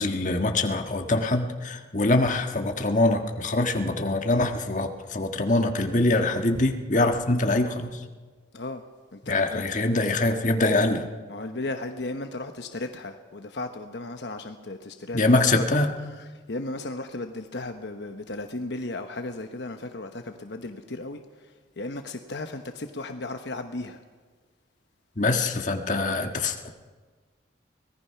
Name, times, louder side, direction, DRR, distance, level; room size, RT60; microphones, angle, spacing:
voice 1, 0.0-8.0 9.3-11.0 15.1-15.9 25.2-26.7, left 2 dB, 40° left, 4 dB, 1.6 m, -24 dB
voice 2, 9.1-9.6 11.3-15.8 16.5-21.2 21.8-24.0, left 2 dB, 65° left, 6 dB, 1.0 m, -35 dB
24.5 x 18.5 x 5.8 m, 1.4 s
head